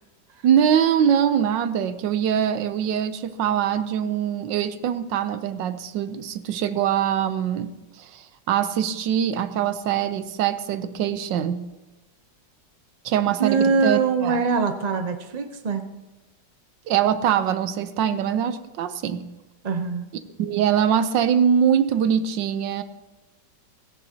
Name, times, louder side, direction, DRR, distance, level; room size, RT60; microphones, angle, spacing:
voice 1, 0.4-7.7 8.0-11.6 13.0-14.4 16.9-19.2 20.4-22.8, right 9 dB, 85° right, 12 dB, 1.4 m, -23 dB
voice 2, 13.4-15.8 19.6-20.1, right 5 dB, 70° right, 7 dB, 0.4 m, -23 dB
17.5 x 14.5 x 2.8 m, 1.1 s
omnidirectional pair, 1.9 m